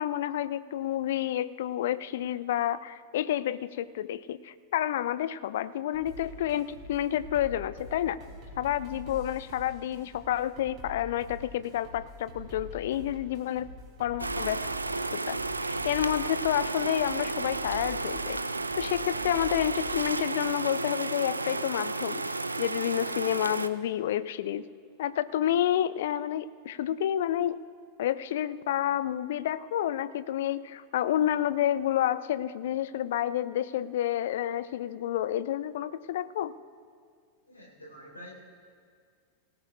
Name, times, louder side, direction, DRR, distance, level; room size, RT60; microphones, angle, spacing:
voice 1, 0.0-8.2 8.6-13.7 14.0-14.6 15.1-18.4 18.8-22.2 22.6-24.6 25.0-27.6 28.0-36.5, left 11 dB, 55° left, 16 dB, 0.4 m, -29 dB
sound 1, 5.9-20.0, left 1 dB, 35° right, 4.0 m, -46 dB
sound 2, 14.2-23.7, right 3 dB, 80° right, 0.4 m, -32 dB
voice 2, 37.5-38.3, equal, 80° left, -1 dB, 4.1 m, -47 dB
18.5 x 18.5 x 2.4 m, 2.1 s
figure-of-eight pair, 90°, 0 cm